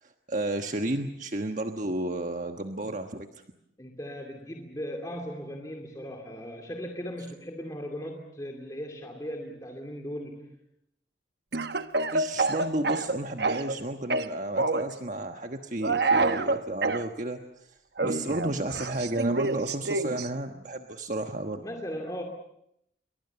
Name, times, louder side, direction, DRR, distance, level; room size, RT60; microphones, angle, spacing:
voice 1, 0.0-3.3 12.1-21.6, right 2 dB, 45° right, 5 dB, 1.3 m, -32 dB
voice 2, 3.8-10.5 18.0-18.3 21.6-22.2, equal, 20° left, 2 dB, 2.5 m, -38 dB
Speech / Cough, 11.5-13.8 14.1-14.9 15.8-17.0 18.0-20.3, right 3 dB, 65° right, 1.2 m, -27 dB
29.0 x 23.5 x 7.0 m, 0.77 s
head